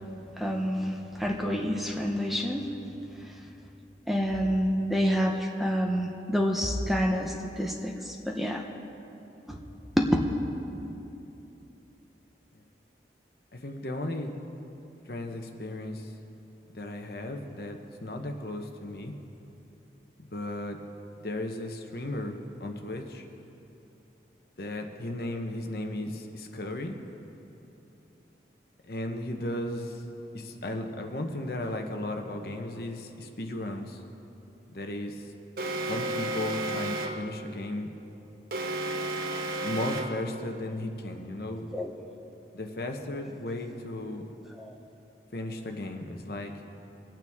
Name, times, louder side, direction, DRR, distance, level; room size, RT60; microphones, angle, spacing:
voice 1, 0.4-2.7 4.1-8.6 9.5-9.6 10.0-10.1 41.7-41.9 44.6-44.7, equal, ahead, 0 dB, 0.7 m, -28 dB
voice 2, 13.5-14.4 15.1-16.1 16.7-19.1 20.3-20.8 21.2-23.2 24.6-27.0 28.8-30.0 30.3-34.0 34.7-35.3 35.9-37.9 39.3-41.7 42.5-44.3 45.3-46.5, left 1 dB, 60° left, 4 dB, 1.0 m, -35 dB
Alarm, 35.6-37.3 38.5-40.3, right 2 dB, 55° right, 0.7 m, -32 dB
22.0 x 9.0 x 3.6 m, 3.0 s
head